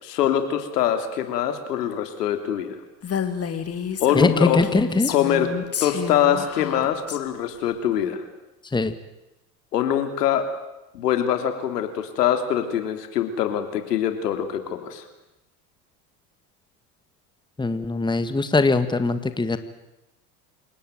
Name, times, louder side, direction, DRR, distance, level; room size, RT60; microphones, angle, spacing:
voice 1, 0.0-2.8 4.0-4.6 5.1-5.5 5.8-8.2 9.7-10.5 10.9-15.0, left 10 dB, 85° left, 8 dB, 3.3 m, -23 dB
Female speech woman speaking, 3.0-7.2, left 7 dB, 30° left, 3.0 m, -29 dB
voice 2, 4.2-5.1 8.7-8.9 17.6-19.6, left 3 dB, 10° left, 11 dB, 1.7 m, -21 dB
28.5 x 18.0 x 9.3 m, 0.94 s
hypercardioid pair, 90°, 47 cm